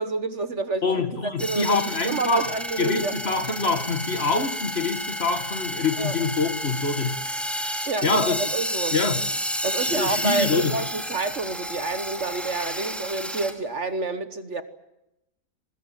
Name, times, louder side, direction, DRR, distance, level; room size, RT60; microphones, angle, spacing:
voice 1, 0.0-0.9 1.4-3.1 6.0-6.3 7.9-9.0 9.6-14.6, right 3 dB, 45° right, 1.5 m, -28 dB
voice 2, 0.8-2.5 2.8-7.4 8.0-8.4 8.9-9.2 9.8-10.8, left 4 dB, 40° left, 1.8 m, -25 dB
sound 1, 1.4-13.5, equal, ahead, 2.8 m, -31 dB
24.0 x 21.0 x 9.2 m
omnidirectional pair, 1.8 m